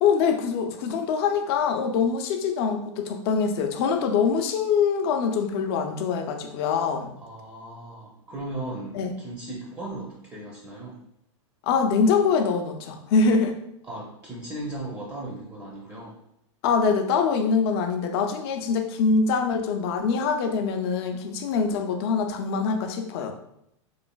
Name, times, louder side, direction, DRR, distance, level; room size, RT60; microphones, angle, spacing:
voice 1, 0.0-7.1 8.9-9.1 11.6-13.6 16.6-23.3, left 5 dB, 55° left, 5 dB, 0.4 m, -24 dB
voice 2, 7.2-11.0 13.8-16.2, right 1 dB, 20° right, -3 dB, 0.5 m, -37 dB
3.1 x 2.4 x 2.2 m, 0.76 s
hypercardioid pair, 115°, 16 cm